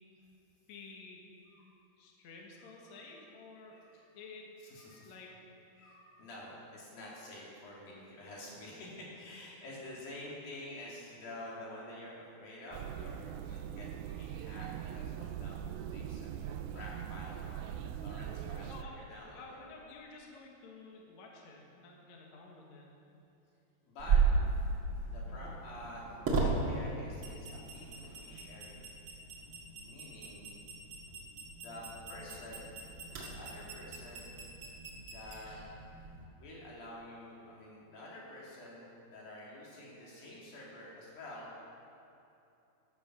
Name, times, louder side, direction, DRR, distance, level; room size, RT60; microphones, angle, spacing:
voice 1, 0.7-1.2 2.0-3.8 4.1-4.4 4.9-5.3 18.6-19.1 19.3-22.9 24.1-24.3 25.3-25.5, left 3 dB, 70° left, -1 dB, 1.7 m, -52 dB
voice 2, 2.6-3.0 3.7-4.0 4.6-5.1 5.8-19.4 23.8-24.2 25.1-28.8 29.8-30.5 31.5-32.7 33.3-34.4 35.0-35.7 36.4-41.5, left 1 dB, 50° left, -5 dB, 4.2 m, -49 dB
sound 1, 12.7-18.8, right 9 dB, 85° right, 2.6 m, -41 dB
sound 2, 24.0-36.2, right 4 dB, 60° right, 1.4 m, -36 dB
13.0 x 12.5 x 6.1 m, 2.8 s
omnidirectional pair, 5.7 m